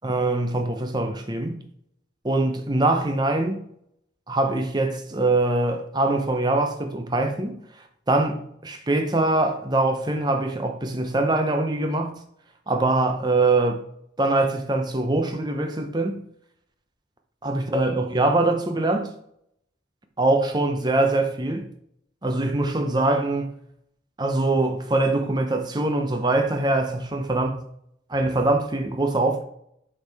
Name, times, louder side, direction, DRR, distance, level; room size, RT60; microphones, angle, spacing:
voice 1, 0.0-1.6 2.2-3.6 4.3-7.6 8.1-12.1 12.7-13.8 14.2-16.2 17.4-19.1 20.2-21.7 22.2-23.5 24.2-27.6 28.1-29.4, right 2 dB, 20° right, 0.8 m, -23 dB
8.0 x 4.8 x 3.5 m
head